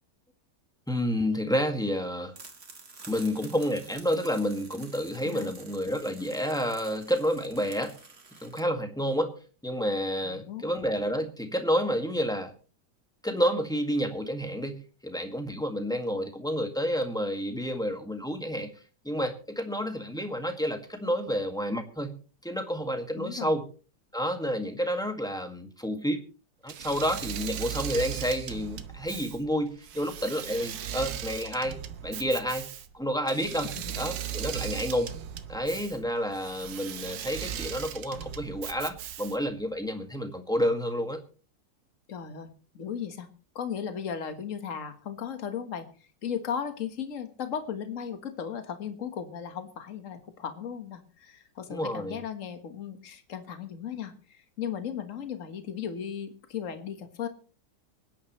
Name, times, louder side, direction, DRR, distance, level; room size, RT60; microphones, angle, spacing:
voice 1, 0.9-2.3 3.1-8.0 8.4-9.4 9.6-12.5 13.2-18.7 19.0-22.1 22.4-23.7 24.1-26.2 26.6-31.8 32.0-32.7 32.9-35.1 35.5-41.2 51.7-52.2, equal, ahead, 5 dB, 1.6 m, -30 dB
sound 1, 2.3-8.6, right 4 dB, 40° right, 2.1 m, -49 dB
voice 2, 10.2-10.6 23.2-23.6 33.8-34.0 42.1-43.3 43.6-45.9 46.2-57.3, left 8 dB, 45° left, 8 dB, 1.7 m, -36 dB
Engine / Mechanisms, 26.7-39.6, right 9 dB, 85° right, 1.6 m, -38 dB
25.0 x 10.0 x 3.1 m, 0.37 s
omnidirectional pair, 1.9 m